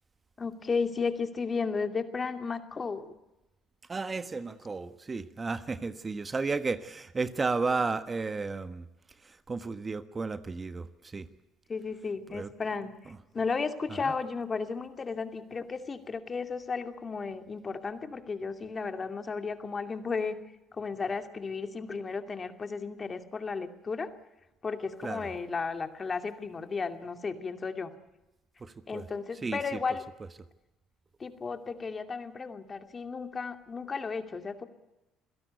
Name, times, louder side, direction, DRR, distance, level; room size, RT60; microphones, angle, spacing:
voice 1, 0.4-3.1 11.7-20.4 20.7-24.1 24.6-27.9 28.9-30.0 31.2-34.6, left 4 dB, 35° left, 8 dB, 2.5 m, -34 dB
voice 2, 3.9-8.9 9.2-11.3 12.3-12.5 14.0-14.1 25.0-25.3 28.6-29.1 29.4-29.8, right 4 dB, 30° right, 12 dB, 1.4 m, -33 dB
28.0 x 17.0 x 8.2 m, 1.0 s
hypercardioid pair, 65°, 0 cm